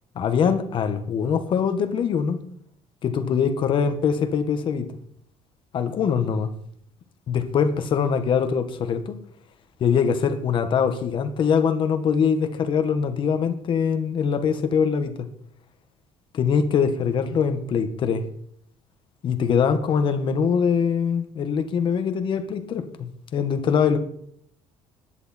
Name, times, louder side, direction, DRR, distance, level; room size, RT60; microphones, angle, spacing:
voice 1, 0.1-2.4 3.0-4.9 5.7-6.5 7.3-9.2 9.8-15.3 16.3-18.2 19.2-24.0, left 6 dB, 45° left, 1.6 m, -23 dB
16.0 x 11.0 x 4.5 m
cardioid pair, 155°, 12 cm